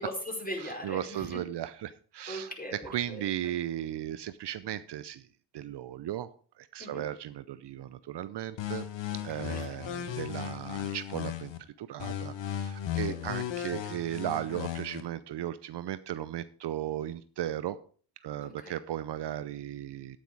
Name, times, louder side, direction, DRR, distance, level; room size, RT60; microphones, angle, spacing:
voice 1, 0.0-1.4 2.3-3.2 6.8-7.0 9.1-9.8 12.9-13.2 18.4-18.8, equal, 20° left, 1 dB, 5.1 m, -40 dB
voice 2, 0.8-2.5 2.9-5.3 5.5-6.3 6.6-8.8 9.2-11.5 11.8-17.8 18.2-20.2, right 12 dB, 60° right, 14 dB, 0.7 m, -36 dB
sound 1, 8.6-11.6 12.0-15.0, left 11 dB, 65° left, 1.4 m, -36 dB
9.6 x 9.1 x 4.8 m, 0.43 s
hypercardioid pair, 45°, 48 cm